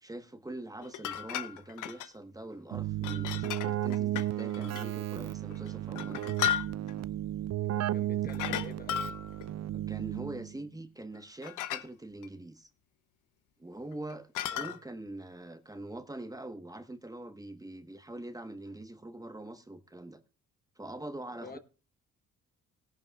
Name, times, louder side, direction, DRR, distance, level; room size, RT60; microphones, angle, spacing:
voice 1, 0.0-6.4 9.7-12.7 13.6-20.2 20.8-21.6, right 1 dB, 10° right, 1.1 m, -43 dB
sound 1, 0.8-2.1 3.0-4.9 5.5-7.0 8.3-9.5 11.1-11.2 11.4-11.9 12.2-12.3 13.9-14.8, left 11 dB, 85° left, 0.8 m, -35 dB
Keyboard (musical), 2.7-10.6, right 13 dB, 60° right, 0.5 m, -34 dB
voice 2, 7.7-9.1 14.5-14.8 21.4-21.6, left 4 dB, 30° left, 1.1 m, -48 dB
17.0 x 11.0 x 2.3 m
cardioid pair, 90°, 30 cm